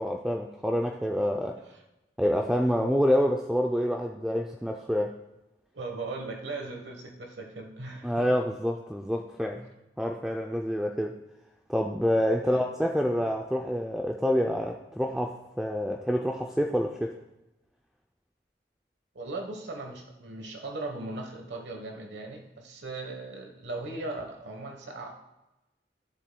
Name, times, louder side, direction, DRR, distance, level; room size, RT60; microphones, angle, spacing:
voice 1, 0.0-1.6 2.2-5.2 8.0-9.7 10.0-11.2 11.7-17.2, equal, 5° right, 2 dB, 0.4 m, -27 dB
voice 2, 5.7-8.3 12.4-12.6 19.1-25.1, right 2 dB, 85° right, 2 dB, 1.2 m, -38 dB
13.0 x 7.4 x 2.3 m, 0.97 s
head